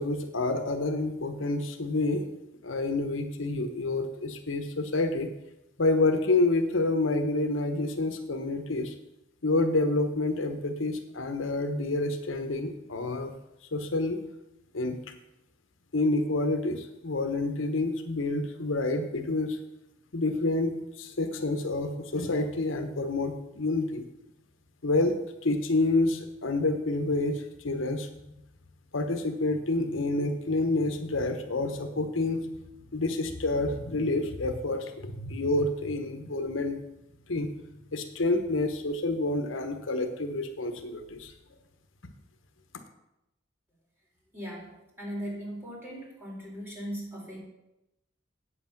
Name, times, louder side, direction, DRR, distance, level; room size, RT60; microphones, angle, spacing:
voice 1, 0.0-2.2 2.6-5.3 5.8-8.9 9.4-13.3 13.7-14.2 14.7-15.0 15.9-19.6 20.1-24.0 24.8-28.1 28.9-32.5 32.9-36.8 37.3-37.5 37.9-41.3, left 2 dB, 80° left, 6 dB, 1.1 m, -28 dB
voice 2, 44.3-47.4, equal, 10° right, -4 dB, 3.8 m, -38 dB
8.5 x 8.1 x 5.9 m, 0.89 s
head